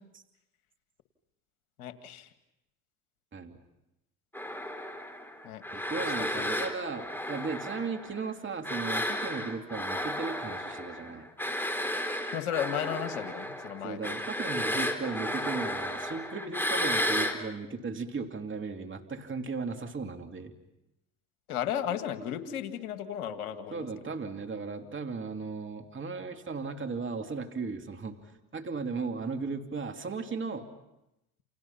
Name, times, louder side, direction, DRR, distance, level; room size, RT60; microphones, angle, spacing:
voice 1, 1.8-2.3 5.4-5.6 6.3-6.4 12.3-14.0 21.5-23.9, left 9 dB, 85° left, 8 dB, 2.2 m, -34 dB
sound 1, 4.3-8.3 8.6-17.4, equal, 5° left, 4.2 m, -33 dB
voice 2, 5.7-11.3 13.8-20.5 23.7-30.7, right 4 dB, 25° right, 5 dB, 2.8 m, -36 dB
30.0 x 28.5 x 5.8 m, 0.89 s
hypercardioid pair, 70°, 43 cm